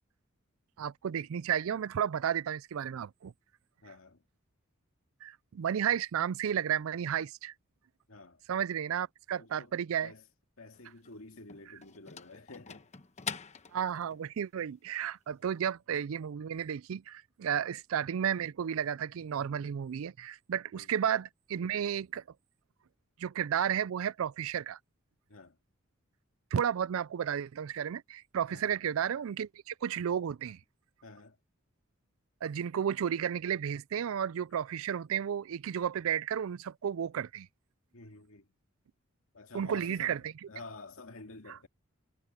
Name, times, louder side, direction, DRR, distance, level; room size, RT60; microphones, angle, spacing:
voice 1, 0.8-3.3 5.2-7.5 8.5-10.1 13.7-22.2 23.2-24.8 26.5-30.6 32.4-37.5 39.5-40.3, right 8 dB, 70° right, 0.4 m, -33 dB
voice 2, 3.8-4.2 8.1-8.4 9.4-9.7 10.0-10.3 10.6-12.9 20.7-20.9 25.3-25.6 28.5-28.8 31.0-31.4 37.9-38.5 39.3-41.7, left 3 dB, 75° left, 2.1 m, -50 dB
sound 1, 10.7-14.3, left 6 dB, 35° left, 1.0 m, -44 dB
head